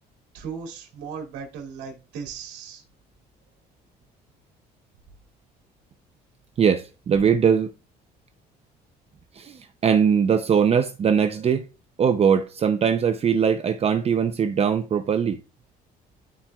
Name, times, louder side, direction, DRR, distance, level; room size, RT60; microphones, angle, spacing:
voice 1, 0.3-2.8, right 6 dB, 85° right, 2.5 m, -37 dB
voice 2, 6.6-7.7 9.3-11.7 12.0-15.4, right 7 dB, 35° right, 0.6 m, -21 dB
13.0 x 4.3 x 2.4 m
cardioid pair, 110°, 17 cm